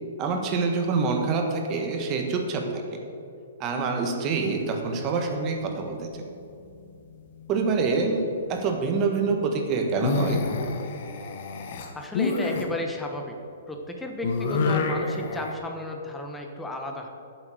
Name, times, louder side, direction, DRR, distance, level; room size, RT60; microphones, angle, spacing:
voice 1, 0.2-2.8 3.6-6.1 7.5-8.2 8.5-10.4, right 4 dB, 30° right, 4 dB, 1.5 m, -26 dB
sound 1, 6.1-6.9 7.2-7.7 9.9-12.6 14.2-15.5, left 4 dB, 55° left, 1.5 m, -28 dB
voice 2, 11.7-13.3 13.7-17.1, left 1 dB, 5° left, 2 dB, 1.1 m, -34 dB
8.9 x 7.9 x 7.8 m, 2.6 s
hypercardioid pair, 135°, 0 cm